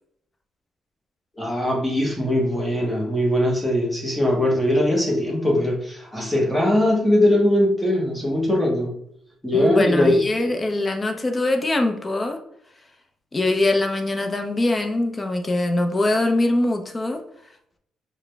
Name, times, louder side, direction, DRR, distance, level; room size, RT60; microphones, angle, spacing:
voice 1, 1.4-8.9 9.4-10.4, left 1 dB, 5° left, -1 dB, 1.1 m, -20 dB
voice 2, 9.5-12.4 13.3-17.2, left 2 dB, 25° left, 5 dB, 0.7 m, -22 dB
4.7 x 2.2 x 3.4 m, 0.71 s
cardioid pair, 90°, 0 cm